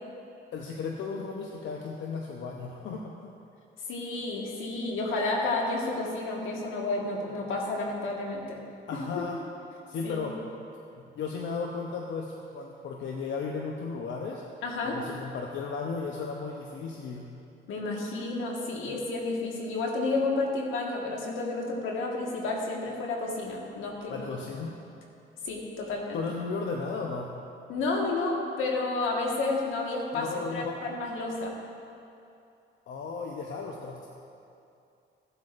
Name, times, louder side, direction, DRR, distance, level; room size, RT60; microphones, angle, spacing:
voice 1, 0.5-3.3 8.9-9.4 9.9-10.4 11.2-14.4 14.8-17.3 24.1-24.8 26.1-27.3 30.1-30.8 32.9-34.1, left 4 dB, 70° left, 0 dB, 0.8 m, -35 dB
voice 2, 3.9-8.6 8.9-9.3 10.0-10.1 14.6-15.0 17.7-24.3 25.4-26.2 27.7-31.5, left 3 dB, 85° left, -1 dB, 1.6 m, -31 dB
16.0 x 8.0 x 2.6 m, 2.6 s
cardioid pair, 90°, 20 cm